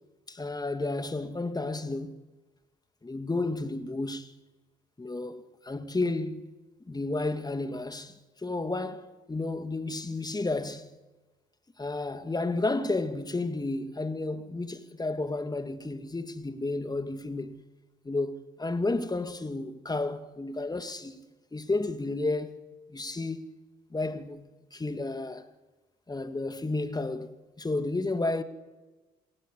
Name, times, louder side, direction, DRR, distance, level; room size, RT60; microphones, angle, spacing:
voice 1, 0.3-2.2 3.0-4.3 5.0-6.5 6.9-10.9 11.8-17.6 18.0-21.2 21.5-22.6 22.9-23.5 23.9-25.5 26.1-28.4, left 2 dB, 20° left, 2.3 m, -32 dB
27.5 x 20.0 x 8.5 m
hypercardioid pair, 50°, 20 cm